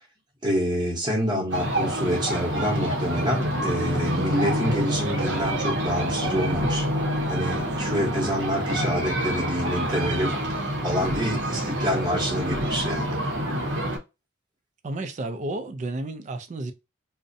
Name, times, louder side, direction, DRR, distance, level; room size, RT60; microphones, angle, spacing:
voice 1, 0.4-6.8 7.3-10.4 10.8-13.2, equal, 20° right, 0.8 m, -27 dB
sound 1, 1.5-14.0, equal, 70° right, 0.7 m, -27 dB
voice 2, 14.8-16.7, right 2 dB, 40° right, 0.3 m, -32 dB
2.6 x 2.1 x 2.5 m
head